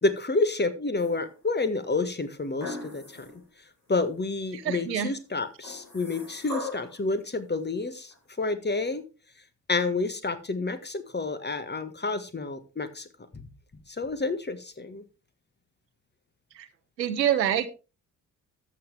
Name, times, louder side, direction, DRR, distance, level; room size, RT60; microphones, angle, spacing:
voice 1, 0.0-3.3 3.9-9.0 9.7-13.1 13.3-13.5 14.0-15.0, left 3 dB, 20° left, 11 dB, 1.6 m, -29 dB
sound 1, 1.0-1.6 2.6-3.4 3.9-4.0 5.6-7.0 8.1-8.2, left 3 dB, 85° left, 4.3 m, -38 dB
voice 2, 4.5-5.1 16.5-16.7 17.0-17.7, right 10 dB, 85° right, 12 dB, 0.8 m, -26 dB
13.0 x 7.8 x 3.4 m, 0.31 s
figure-of-eight pair, 40°, 49 cm